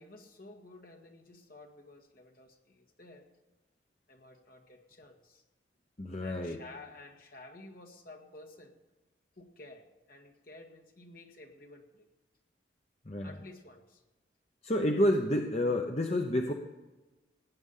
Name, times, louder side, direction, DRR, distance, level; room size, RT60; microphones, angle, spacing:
voice 1, 0.0-3.3 4.1-5.4 6.2-8.8 9.3-12.1 13.2-14.0 15.1-15.2, left 2 dB, 50° left, 2 dB, 1.8 m, -52 dB
voice 2, 6.0-6.6 13.0-13.3 14.6-16.5, left 1 dB, 35° left, 3 dB, 0.9 m, -29 dB
18.5 x 9.5 x 5.6 m, 1.2 s
head